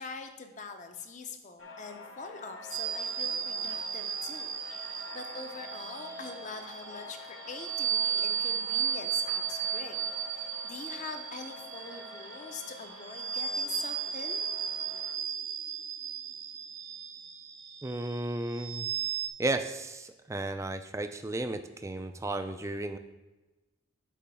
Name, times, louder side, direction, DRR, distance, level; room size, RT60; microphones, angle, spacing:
voice 1, 0.0-4.6 5.1-14.4, left 4 dB, 35° left, 6 dB, 0.6 m, -44 dB
sound 1, 1.6-15.1, left 2 dB, 75° left, 1.0 m, -47 dB
sound 2, 2.7-19.3, right 8 dB, 80° right, 0.7 m, -35 dB
voice 2, 17.8-18.9 19.4-23.0, right 2 dB, 15° right, 9 dB, 0.3 m, -34 dB
8.4 x 3.1 x 5.5 m, 1.1 s
head